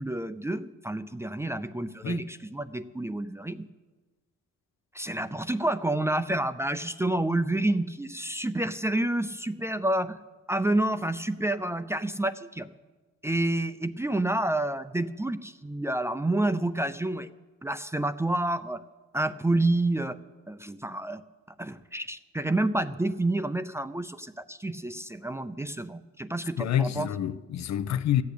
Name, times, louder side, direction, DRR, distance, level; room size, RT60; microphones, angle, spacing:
voice 1, 0.0-3.7 4.9-10.2 10.5-12.7 13.2-17.3 17.6-18.8 19.1-20.2 20.5-21.2 21.6-27.1, right 1 dB, 10° right, 0.5 m, -29 dB
voice 2, 26.6-28.2, left 10 dB, 65° left, 0.7 m, -27 dB
14.5 x 8.5 x 8.4 m
cardioid pair, 90°, 30 cm